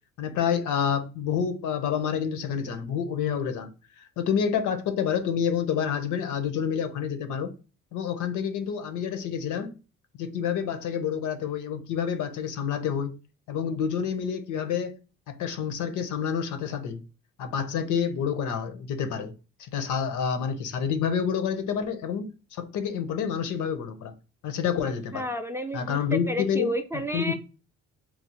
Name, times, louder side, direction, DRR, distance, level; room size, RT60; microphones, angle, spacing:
voice 1, 0.2-3.7 4.0-7.5 7.9-9.7 10.2-13.2 13.5-15.0 15.3-17.0 17.4-19.3 19.6-24.1 24.4-25.3 25.7-26.7 27.1-27.4, left 7 dB, 80° left, 0.6 m, -28 dB
voice 2, 24.8-26.0 26.3-27.4, equal, 10° right, 0.3 m, -31 dB
3.1 x 2.0 x 2.8 m
cardioid pair, 90°, 30 cm